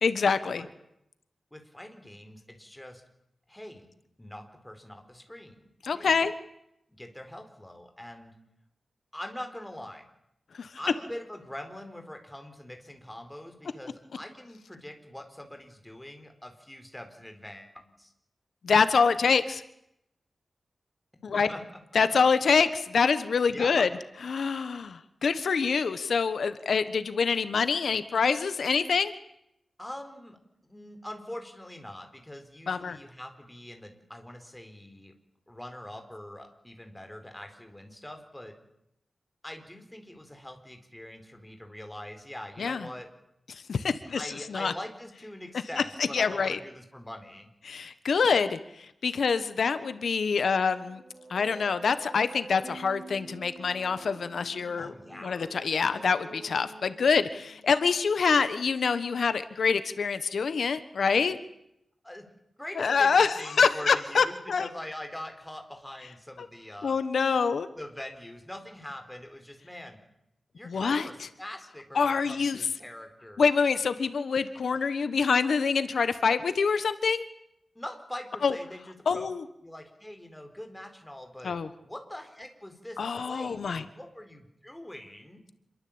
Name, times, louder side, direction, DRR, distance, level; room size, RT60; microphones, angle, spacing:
voice 1, 0.0-0.6 5.8-6.3 10.6-10.7 18.6-19.6 21.2-21.5 21.9-23.9 24.2-29.1 32.7-33.0 42.6-42.8 43.5-44.7 46.0-46.6 47.6-51.0 51.3-54.9 55.2-61.4 62.8-64.7 66.8-67.7 70.6-71.0 71.9-72.6 73.4-77.3 78.4-78.5 79.1-79.4 81.4-81.7 83.0-83.8, left 5 dB, 75° left, 12 dB, 1.3 m, -26 dB
voice 2, 1.5-3.0 3.5-3.9 4.2-6.2 6.9-8.4 9.1-10.1 10.8-18.1 21.3-21.6 23.5-23.9 29.8-30.4 30.6-35.1 35.5-38.5 39.4-43.1 44.1-47.5 54.8-55.5 62.0-62.2 62.6-67.0 67.7-70.0 70.5-73.4 74.4-74.5 77.7-79.2 79.6-81.6 81.8-85.4, left 1 dB, 10° left, 5 dB, 4.4 m, -43 dB
sound 1, 50.7-58.5, right 2 dB, 25° right, 6.0 m, -48 dB
27.0 x 23.0 x 8.8 m, 0.79 s
wide cardioid pair, 160°, 0 cm